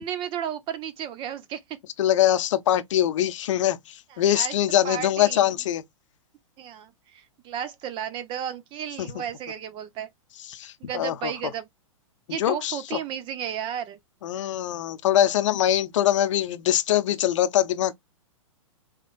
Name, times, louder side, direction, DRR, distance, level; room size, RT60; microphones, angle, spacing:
voice 1, 0.0-1.6 4.1-4.5 4.8-5.5 6.6-10.1 10.9-11.7 12.3-14.0, right 9 dB, 30° right, 0.7 m, -33 dB
voice 2, 2.0-5.8 9.0-9.1 10.5-11.3 12.4-12.8 14.2-17.9, left 11 dB, 60° left, 0.7 m, -23 dB
5.2 x 3.3 x 2.4 m
hypercardioid pair, 125°, 18 cm